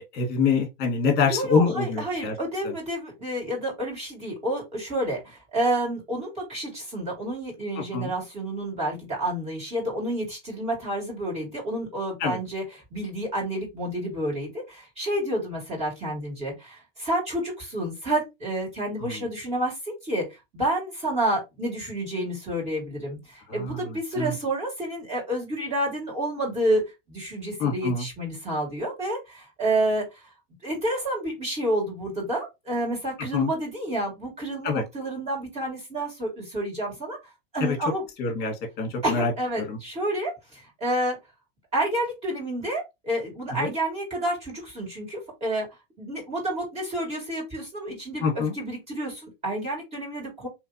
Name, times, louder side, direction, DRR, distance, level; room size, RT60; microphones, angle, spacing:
voice 1, 0.1-2.3 2.6-2.7 7.9-8.1 12.2-12.4 19.0-19.2 23.5-24.3 27.6-28.1 33.3-33.5 34.6-34.8 37.6-37.8 38.2-39.3 39.7-39.8 43.5-43.7 48.2-48.5, left 5 dB, 30° left, 1.5 m, -25 dB
voice 2, 1.3-12.6 12.9-26.8 27.1-30.2 30.6-37.2 37.5-38.0 39.0-41.2 41.7-45.7 46.0-50.5, right 1 dB, 20° right, 2.3 m, -29 dB
3.2 x 2.9 x 2.7 m
hypercardioid pair, 120°, 31 cm